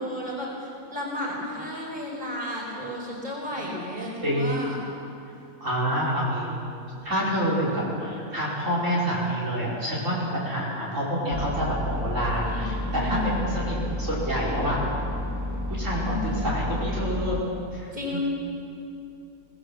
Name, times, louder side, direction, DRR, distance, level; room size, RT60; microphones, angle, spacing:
voice 1, 0.0-4.8 12.4-13.5 16.0-16.5 17.9-18.2, left 1 dB, 30° right, -3 dB, 5.4 m, -33 dB
voice 2, 4.2-4.6 5.6-6.6 7.0-14.8 15.7-17.4 17.7-18.2, equal, 60° right, -6 dB, 5.4 m, -27 dB
sound 1, 11.3-17.4, left 1 dB, 15° right, 1.5 m, -31 dB
25.0 x 19.0 x 7.5 m, 2.7 s
omnidirectional pair, 1.5 m